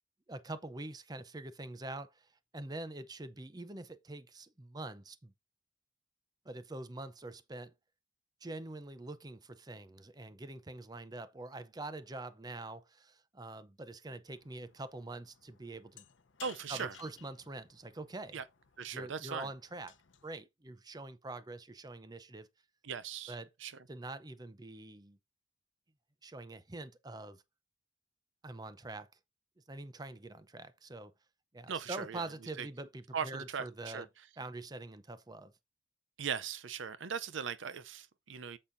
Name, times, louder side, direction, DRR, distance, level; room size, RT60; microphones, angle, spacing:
voice 1, 0.3-5.3 6.4-7.7 8.4-16.1 16.7-18.4 18.9-20.0 20.2-22.5 23.3-23.5 23.9-25.2 26.2-27.4 28.4-29.1 29.7-31.1 31.5-34.0 34.4-35.5, right 2 dB, 20° right, 0.6 m, -45 dB
sound 1, 14.3-20.3, left 10 dB, 70° left, 0.8 m, -58 dB
voice 2, 16.4-16.9 18.3-18.4 18.8-19.5 22.8-23.4 23.6-23.7 31.7-32.2 32.6-32.7 33.1-34.1 36.2-38.6, right 7 dB, 70° right, 0.6 m, -39 dB
8.3 x 7.6 x 2.6 m
head